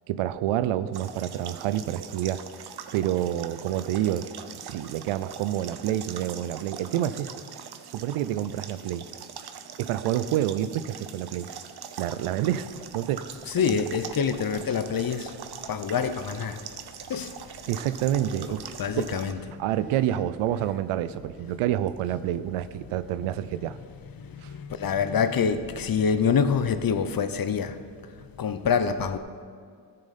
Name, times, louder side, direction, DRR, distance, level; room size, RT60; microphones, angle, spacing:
voice 1, 0.1-2.4 2.9-4.3 4.6-7.3 7.9-9.1 9.8-11.5 12.0-13.2 17.7-18.6 19.0-19.1 19.6-23.8 24.4-24.5, right 12 dB, 85° right, 0.6 m, -28 dB
sound 1, 0.9-19.3, right 7 dB, 50° right, 0.8 m, -42 dB
voice 2, 13.5-15.3 15.7-16.6 17.1-17.3 18.5-19.4 24.8-27.8 28.4-29.2, left 6 dB, 45° left, 0.8 m, -26 dB
13.5 x 6.6 x 4.2 m
supercardioid pair, 55°, 50 cm